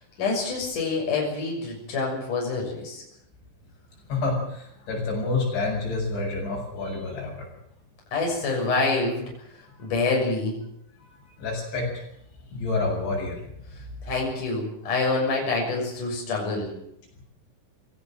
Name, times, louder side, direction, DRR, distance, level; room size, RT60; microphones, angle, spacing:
voice 1, 0.2-3.0 8.1-9.2 9.8-10.5 14.1-16.7, left 3 dB, 45° left, -1 dB, 8.0 m, -26 dB
voice 2, 4.1-7.5 11.4-12.0 12.5-13.5, left 3 dB, 80° left, -1 dB, 9.8 m, -28 dB
22.5 x 17.5 x 7.7 m, 0.73 s
omnidirectional pair, 5.2 m